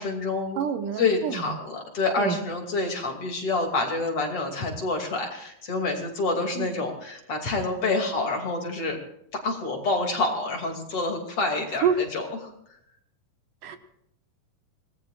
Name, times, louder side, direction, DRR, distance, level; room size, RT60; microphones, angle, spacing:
voice 1, 0.0-0.6 1.0-9.0 9.3-12.5, left 3 dB, 45° left, 2 dB, 3.4 m, -27 dB
voice 2, 0.6-1.6 2.2-2.4 6.6-6.7 11.8-12.1 13.6-13.8, right 6 dB, 75° right, 7 dB, 2.9 m, -27 dB
26.5 x 19.0 x 2.5 m, 0.75 s
omnidirectional pair, 3.9 m